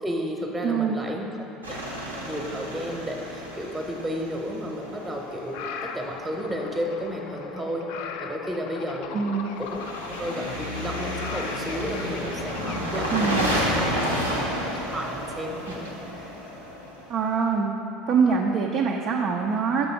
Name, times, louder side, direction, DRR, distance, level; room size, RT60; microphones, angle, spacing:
voice 1, 0.0-7.9 8.2-9.3 9.6-9.8 10.2-13.9 14.9-15.9, equal, 15° right, 1 dB, 0.9 m, -32 dB
voice 2, 0.6-1.0 9.1-9.4 13.1-14.2 17.1-17.7 18.1-19.9, right 5 dB, 45° right, 0 dB, 0.5 m, -24 dB
sound 1, 1.6-5.5 9.6-17.3, equal, 90° right, 0.8 m, -31 dB
sound 2, 4.8-12.8, left 6 dB, 60° left, 0.4 m, -38 dB
6.8 x 4.1 x 5.7 m, 2.8 s
figure-of-eight pair, 65°, 0 cm